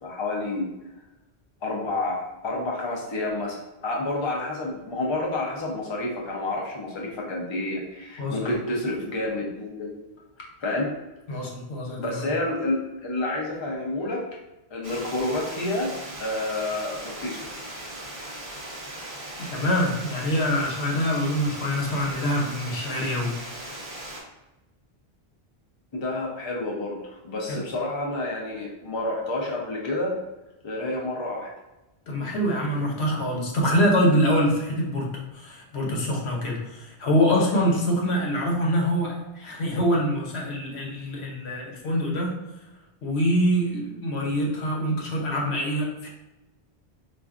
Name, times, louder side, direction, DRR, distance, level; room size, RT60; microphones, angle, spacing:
voice 1, 0.0-0.7 1.6-9.9 10.6-10.9 12.0-14.2 14.7-17.4 25.9-30.2 30.6-31.5, left 2 dB, 35° left, -2 dB, 0.6 m, -29 dB
voice 2, 8.2-8.5 11.3-12.2 19.4-23.3 27.5-27.6 32.1-42.3 43.0-46.1, equal, 85° left, -1 dB, 1.1 m, -25 dB
Water, 14.8-24.2, right 1 dB, 35° right, 0.7 m, -38 dB
4.3 x 2.5 x 2.4 m, 1.0 s
omnidirectional pair, 1.1 m